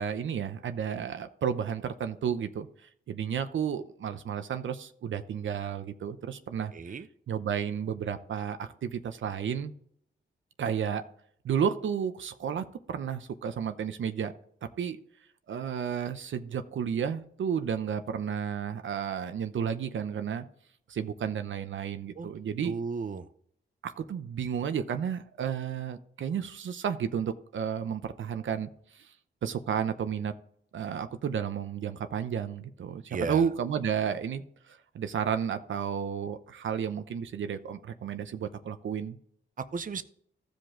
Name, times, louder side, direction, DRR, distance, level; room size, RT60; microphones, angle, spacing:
voice 1, 0.0-6.7 7.3-9.7 10.6-11.0 11.4-14.3 14.8-15.0 15.5-20.4 20.9-22.8 23.8-28.7 28.9-29.1 29.4-30.3 30.7-39.2, right 8 dB, 75° right, 0.7 m, -32 dB
voice 2, 6.7-7.1 22.2-22.3 22.6-23.3 33.1-33.5 39.7-40.0, right 5 dB, 40° right, 0.7 m, -34 dB
14.5 x 5.2 x 3.7 m
cardioid pair, 65°, 20 cm